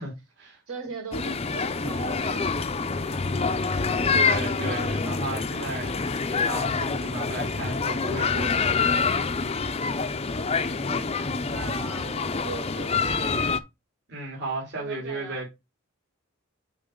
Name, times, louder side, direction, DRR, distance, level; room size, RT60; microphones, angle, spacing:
voice 1, 0.0-0.6 4.1-9.3 14.1-15.5, right 2 dB, 50° right, 3.3 m, -35 dB
voice 2, 0.7-3.2 11.5-13.4 14.7-15.4, right 4 dB, 80° right, 5.0 m, -41 dB
sound 1, 1.1-13.6, left 4 dB, 30° left, 0.6 m, -26 dB
8.5 x 4.6 x 3.8 m
head